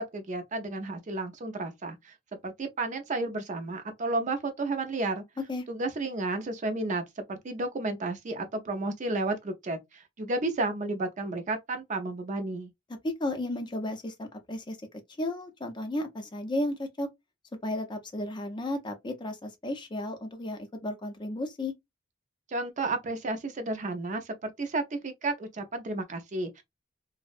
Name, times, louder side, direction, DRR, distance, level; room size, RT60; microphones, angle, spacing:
voice 1, 0.0-2.1 2.4-5.2 5.7-12.7 22.5-26.6, right 2 dB, 40° right, 0.4 m, -32 dB
voice 2, 13.0-14.8 15.2-17.1 17.6-21.7, left 1 dB, 25° left, 0.4 m, -33 dB
2.6 x 2.0 x 2.4 m
head